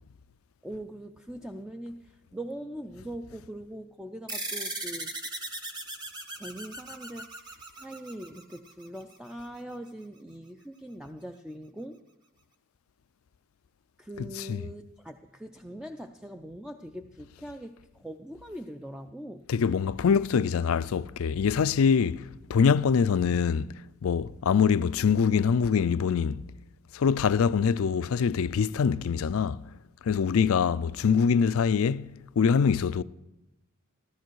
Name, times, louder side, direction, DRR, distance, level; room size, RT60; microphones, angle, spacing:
voice 1, 0.6-5.2 6.4-12.0 14.0-19.5, right 1 dB, 5° right, 0.4 m, -42 dB
sound 1, 4.3-9.2, right 2 dB, 20° right, 1.1 m, -38 dB
voice 2, 14.2-14.6 19.5-23.7 24.0-26.4 26.9-29.6 30.0-33.0, left 6 dB, 65° left, 0.4 m, -24 dB
14.0 x 14.0 x 4.6 m
head